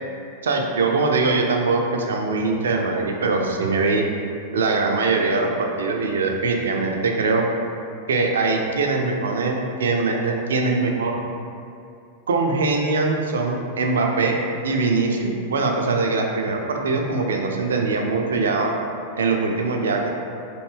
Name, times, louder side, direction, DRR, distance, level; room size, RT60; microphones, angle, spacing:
voice 1, 0.4-4.0 4.5-7.4 8.1-11.2 12.3-14.4 14.6-18.7 19.2-20.1, right 3 dB, 80° right, 2 dB, 0.4 m, -22 dB
3.0 x 2.6 x 3.2 m, 2.6 s
hypercardioid pair, 100°, 0 cm